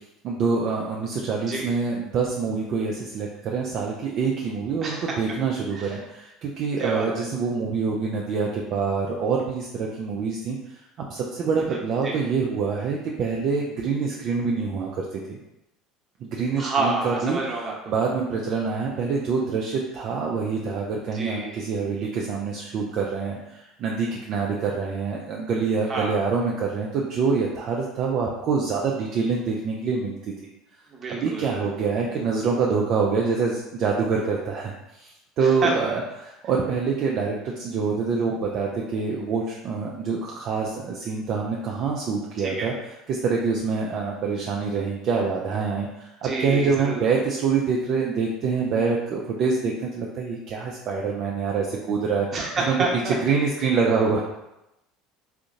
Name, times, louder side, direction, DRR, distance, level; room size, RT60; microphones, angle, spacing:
voice 1, 0.2-10.6 11.1-15.4 16.2-17.4 17.9-30.2 31.1-34.7 35.0-35.1 35.4-42.7 43.1-52.3 52.7-52.8 53.0-54.2, right 5 dB, 50° right, -1 dB, 0.4 m, -26 dB
voice 2, 6.8-7.3 11.7-12.2 16.6-17.7 21.1-21.6 25.9-26.2 30.9-31.7 35.4-35.7 42.4-42.7 46.2-47.0 52.3-53.1, right 3 dB, 35° right, -2 dB, 1.0 m, -29 dB
3.6 x 2.5 x 2.5 m, 0.91 s
hypercardioid pair, 70°, 0 cm